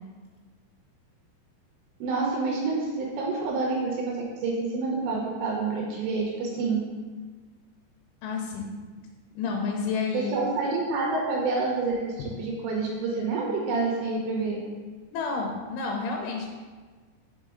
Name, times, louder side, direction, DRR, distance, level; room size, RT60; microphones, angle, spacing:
voice 1, 2.0-6.8 10.1-14.6, right 3 dB, 80° right, -2 dB, 2.8 m, -28 dB
voice 2, 8.2-8.7 9.3-10.4 15.1-16.5, left 4 dB, 90° left, 1 dB, 3.1 m, -30 dB
5.9 x 5.3 x 3.6 m, 1.4 s
omnidirectional pair, 5.4 m